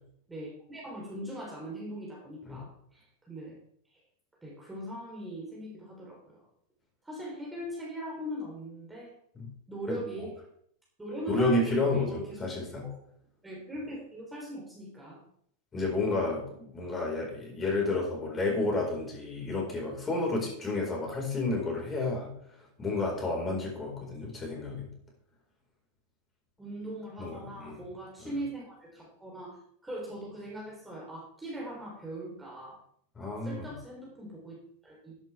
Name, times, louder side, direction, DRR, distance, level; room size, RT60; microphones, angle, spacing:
voice 1, 0.3-3.5 4.4-6.4 7.0-9.1 9.7-10.4 11.0-12.5 12.8-12.9 13.4-15.2 24.0-24.1 26.6-29.6 29.8-32.8 33.4-35.1, right 1 dB, 10° right, -4 dB, 3.8 m, -40 dB
voice 2, 11.3-12.9 15.7-22.3 22.8-24.9 27.2-27.8 28.2-28.3 33.2-33.7, left 2 dB, 20° left, -2 dB, 4.6 m, -31 dB
12.0 x 11.0 x 3.5 m, 0.66 s
figure-of-eight pair, 90°, 0 cm